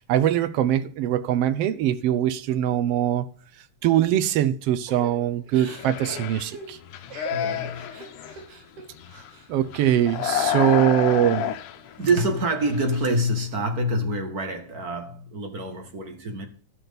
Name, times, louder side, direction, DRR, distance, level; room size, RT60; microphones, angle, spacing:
voice 1, 0.1-3.3 3.8-6.8 9.5-11.5, right 11 dB, 70° right, 1.5 m, -22 dB
Crying sobbing / Breathing, 4.9-9.5 9.9-10.8 11.2-12.0, right 4 dB, 90° right, 3.3 m, -44 dB
sound 1, 5.7-6.5 6.8-8.4 8.9-9.3 9.6-12.4 12.7-13.2, left 10 dB, 85° left, 2.3 m, -30 dB
voice 2, 7.3-7.9 12.0-16.5, right 1 dB, 40° right, 1.7 m, -26 dB
13.5 x 6.0 x 5.2 m
omnidirectional pair, 3.5 m